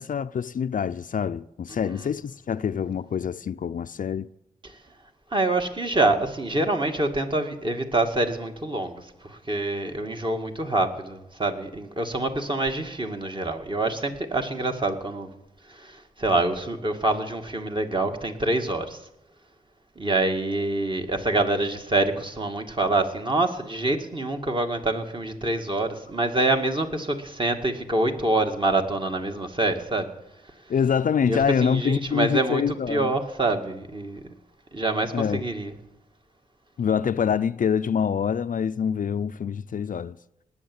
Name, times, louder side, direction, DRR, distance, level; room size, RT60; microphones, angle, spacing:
voice 1, 0.0-4.3 30.7-33.1 35.1-35.4 36.8-40.2, left 7 dB, 55° left, 0.5 m, -25 dB
voice 2, 5.3-15.3 15.8-15.9 16.2-19.0 20.0-30.1 31.3-32.6 32.9-34.2 34.7-35.7, right 2 dB, 30° right, 2.1 m, -26 dB
19.0 x 7.3 x 9.5 m
cardioid pair, 85°, 16 cm